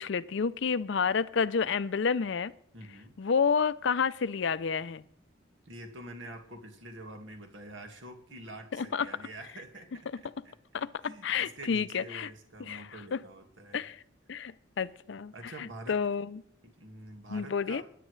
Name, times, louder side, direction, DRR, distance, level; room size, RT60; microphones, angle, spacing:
voice 1, 0.0-2.5 3.2-5.0 8.7-9.1 10.7-12.3 12.7-12.8 13.1-13.2 13.7-14.0 14.3-16.4 17.3-17.8, left 6 dB, 65° left, 16 dB, 0.5 m, -30 dB
voice 2, 2.7-3.2 5.6-13.9 15.3-16.0 16.6-17.8, right 1 dB, 70° right, 4 dB, 1.9 m, -47 dB
20.5 x 10.0 x 3.2 m, 0.69 s
head